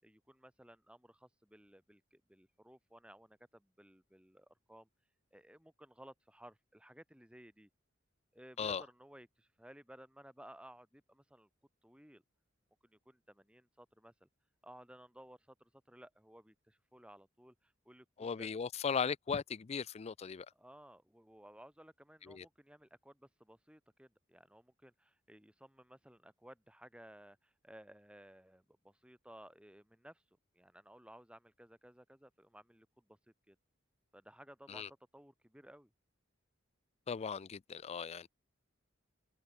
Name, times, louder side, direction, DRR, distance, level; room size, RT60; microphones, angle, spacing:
voice 1, 0.0-4.9 5.3-7.7 8.3-11.5 11.8-12.2 12.8-14.3 14.6-18.6 20.5-30.2 30.5-33.2 33.5-33.6 34.1-34.9 35.1-35.9, right 1 dB, 5° right, 6.3 m, -58 dB
voice 2, 18.2-20.5 22.3-22.5 34.7-34.9 37.1-38.3, left 6 dB, 30° left, 0.4 m, -37 dB
head